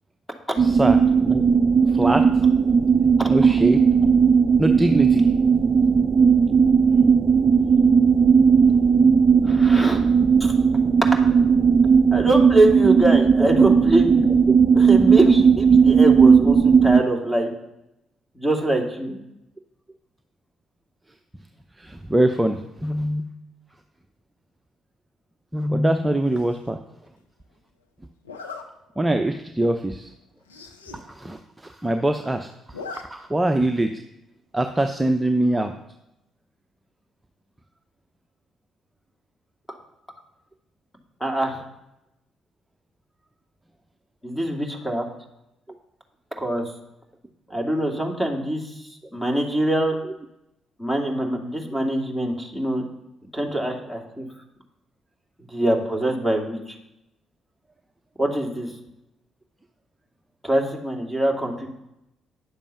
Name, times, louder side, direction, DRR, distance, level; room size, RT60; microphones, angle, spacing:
voice 1, 0.6-1.4 1.9-2.3 3.3-3.8 4.6-5.3 21.8-23.2 25.5-26.8 29.0-30.1 31.1-33.9 34.5-35.7, right 1 dB, 15° right, 6 dB, 0.8 m, -23 dB
sound 1, 0.6-17.0, right 6 dB, 35° right, 0.4 m, -16 dB
voice 2, 9.4-10.0 10.4-10.5 12.1-14.3 14.7-17.5 18.3-19.2 41.2-41.6 44.2-45.0 46.4-46.6 47.5-48.6 49.1-50.0 50.8-52.8 53.3-54.2 55.5-56.7 58.2-58.7 60.4-61.7, right 1 dB, 10° left, 2 dB, 2.7 m, -23 dB
Zipper (clothing), 26.3-26.7 28.2-28.6 29.2-29.4 29.7-29.8 30.0-30.1 30.4-31.0 31.4-31.5 31.7-32.2 32.5-33.0 33.4-33.5 34.8-35.2, left 4 dB, 85° left, 0.8 m, -39 dB
10.0 x 7.2 x 5.7 m, 0.88 s
figure-of-eight pair, 45°, 0 cm